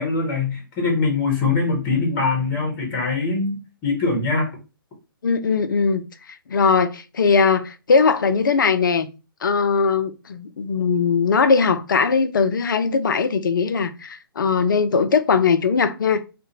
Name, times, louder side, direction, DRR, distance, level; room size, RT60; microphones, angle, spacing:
voice 1, 0.0-4.5, left 4 dB, 25° left, 0.9 m, -22 dB
voice 2, 5.2-9.1 9.4-16.2, left 5 dB, 60° left, 0.4 m, -20 dB
2.4 x 2.1 x 2.7 m
figure-of-eight pair, 130°, 12 cm